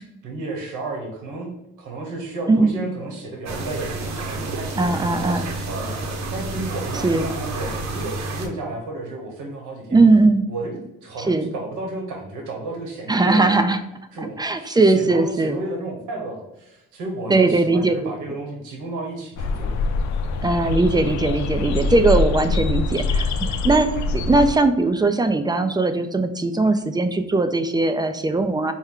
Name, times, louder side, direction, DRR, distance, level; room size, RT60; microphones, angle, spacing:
voice 1, 0.2-10.0 10.5-13.6 14.1-19.7, right 2 dB, 90° right, 1 dB, 1.0 m, -32 dB
sound 1, 3.5-8.5, right 2 dB, 60° right, 0.8 m, -30 dB
voice 2, 4.8-5.5 7.0-7.3 9.9-10.5 11.3-11.5 13.1-13.8 14.4-15.6 17.3-17.9 20.4-28.7, right 3 dB, 15° right, 8 dB, 0.3 m, -19 dB
sound 2, 19.4-24.6, left 3 dB, 70° left, 0.4 m, -24 dB
4.5 x 2.2 x 3.6 m, 0.94 s
cardioid pair, 90°, 30 cm